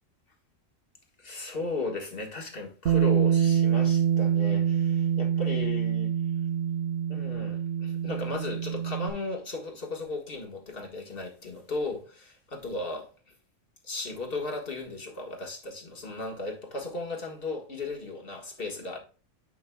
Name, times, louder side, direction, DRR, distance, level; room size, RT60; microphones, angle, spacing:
voice 1, 1.2-6.1 7.1-13.1 13.8-19.0, left 3 dB, 45° left, 1.7 m, -36 dB
Bass guitar, 2.9-9.1, right 9 dB, 55° right, 0.8 m, -26 dB
9.9 x 5.3 x 2.2 m
omnidirectional pair, 1.3 m